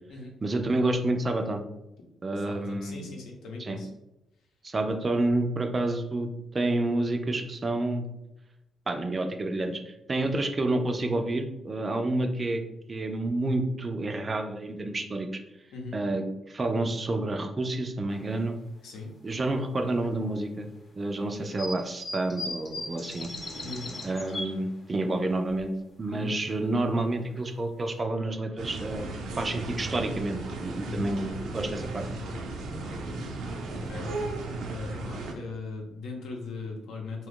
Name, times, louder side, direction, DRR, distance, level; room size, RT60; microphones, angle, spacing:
voice 1, 0.4-1.6 2.2-3.1 3.6-3.8 4.6-8.1 8.9-12.6 12.9-15.3 15.9-18.5 19.2-20.7 21.0-23.3 24.0-25.7 26.0-29.1 29.4-32.0, right 2 dB, 25° right, 6 dB, 0.3 m, -29 dB
voice 2, 2.4-3.9 10.2-10.3 15.7-16.0 18.8-19.1 23.6-23.9 26.1-26.3 30.9-31.1 33.8-34.3 34.6-37.3, left 3 dB, 80° left, 1 dB, 0.7 m, -39 dB
sound 1, 18.1-18.4 19.0-19.1 20.0-20.1 21.5-24.7 25.1-25.2 25.5-25.6 26.1-26.3 26.9-27.0 27.4-27.6 28.0-28.1, left 2 dB, 30° left, 0.7 m, -38 dB
sound 2, 28.6-35.3, right 2 dB, 80° right, 0.5 m, -35 dB
2.8 x 2.3 x 3.6 m, 0.90 s
cardioid pair, 120°, 0 cm